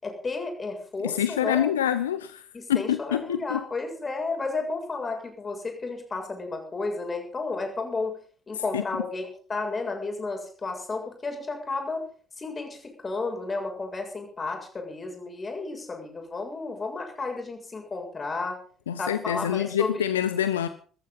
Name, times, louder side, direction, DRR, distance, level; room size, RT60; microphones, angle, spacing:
voice 1, 0.0-1.7 2.5-8.2 8.5-12.0 12.4-18.6 19.0-20.1, left 3 dB, 30° left, 3 dB, 7.4 m, -32 dB
voice 2, 1.0-2.4 2.7-3.6 8.7-8.8 18.9-20.7, left 10 dB, 80° left, 12 dB, 0.8 m, -26 dB
18.0 x 14.0 x 5.6 m, 0.43 s
figure-of-eight pair, 50°, 0 cm